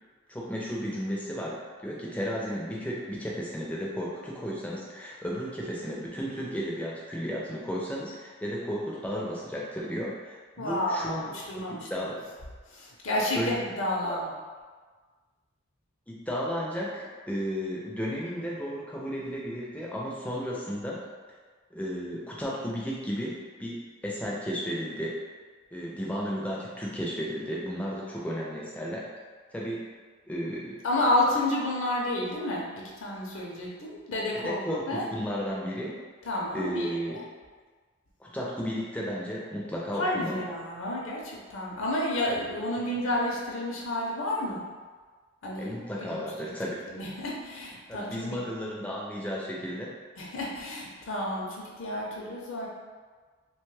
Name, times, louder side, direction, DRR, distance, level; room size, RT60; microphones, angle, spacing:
voice 1, 0.3-11.6 11.9-12.2 13.1-13.6 14.0-14.2 16.1-21.0 21.7-25.2 25.7-29.1 29.5-29.8 30.3-30.8 34.3-36.0 36.5-37.2 38.2-40.4 45.6-46.8 47.9-49.9, equal, 5° left, -4 dB, 0.4 m, -34 dB
voice 2, 10.6-11.2 11.5-12.1 12.7-14.2 30.8-35.1 36.2-37.2 40.0-44.6 45.4-45.7 46.0-46.5 46.9-48.4 50.2-52.7, left 1 dB, 65° left, -3 dB, 0.5 m, -30 dB
2.9 x 2.2 x 3.1 m, 1.5 s
head